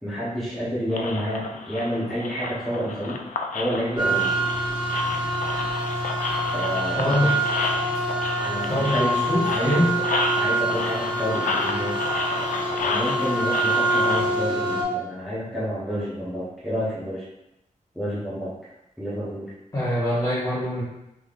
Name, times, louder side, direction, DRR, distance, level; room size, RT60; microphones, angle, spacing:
voice 1, 0.0-3.2 3.5-4.3 6.5-7.3 8.4-10.0 10.3-11.9 12.3-17.2 17.9-18.5 19.0-19.5, equal, ahead, -10 dB, 0.9 m, -29 dB
sound 1, 0.9-14.2, left 4 dB, 80° left, 0.4 m, -31 dB
sound 2, 4.0-14.8, right 2 dB, 35° right, 1.2 m, -25 dB
voice 2, 7.0-7.3 8.7-9.9 19.7-20.8, left 1 dB, 25° left, -7 dB, 1.3 m, -24 dB
3.5 x 3.4 x 2.4 m, 0.89 s
wide cardioid pair, 135°, 14 cm